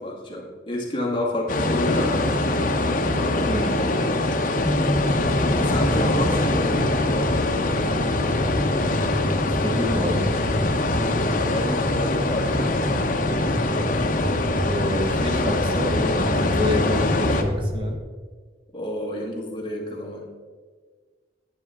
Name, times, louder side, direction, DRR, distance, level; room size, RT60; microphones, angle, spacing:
voice 1, 0.0-2.8 3.2-4.2 5.2-7.5 11.5-12.8 18.7-20.3, left 1 dB, 25° left, -3 dB, 1.9 m, -30 dB
sound 1, 1.5-17.4, left 2 dB, 50° left, 0.9 m, -23 dB
voice 2, 3.5-3.8 9.6-10.3 14.6-18.0, left 1 dB, 30° right, 2 dB, 1.5 m, -28 dB
sound 2, 4.6-18.0, equal, 10° left, 0.5 m, -30 dB
10.5 x 10.5 x 3.6 m, 1.5 s
head